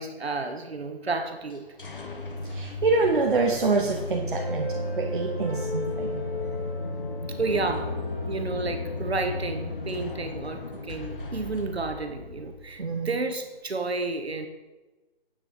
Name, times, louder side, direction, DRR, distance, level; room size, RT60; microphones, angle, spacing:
voice 1, 0.0-1.6 7.4-7.9 8.3-14.5, right 3 dB, 85° right, 6 dB, 1.7 m, -31 dB
sound 1, 1.5-13.1, left 2 dB, 55° left, 1.6 m, -35 dB
voice 2, 2.4-4.7 4.9-6.2 12.8-13.1, right 3 dB, 55° right, 1 dB, 1.2 m, -26 dB
sound 2, 3.0-11.5, left 1 dB, 5° left, 1.6 m, -38 dB
8.9 x 7.4 x 5.3 m, 1.1 s
hypercardioid pair, 175°, 31 cm